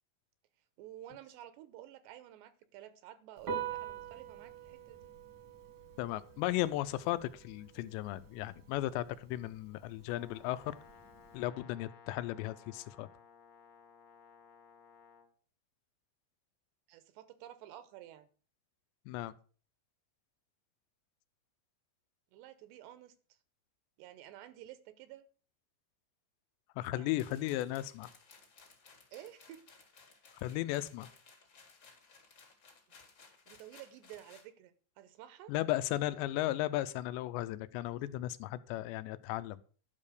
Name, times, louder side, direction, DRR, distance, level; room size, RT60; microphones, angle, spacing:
voice 1, 0.8-5.1 16.9-18.3 22.3-23.1 24.0-25.3 26.9-27.5 29.1-29.7 33.5-35.5, right 12 dB, 80° right, 13 dB, 2.9 m, -52 dB
Piano, 3.4-11.3, right 8 dB, 50° right, 1.5 m, -46 dB
voice 2, 6.0-10.7 11.3-13.1 19.1-19.3 26.8-28.1 30.4-31.1 35.5-39.6, left 15 dB, 85° left, 13 dB, 2.8 m, -35 dB
Brass instrument, 10.0-15.3, left 6 dB, 55° left, 2.2 m, -58 dB
sound 1, 27.2-34.5, left 4 dB, 35° left, 1.9 m, -60 dB
11.5 x 5.4 x 6.5 m, 0.41 s
omnidirectional pair, 5.1 m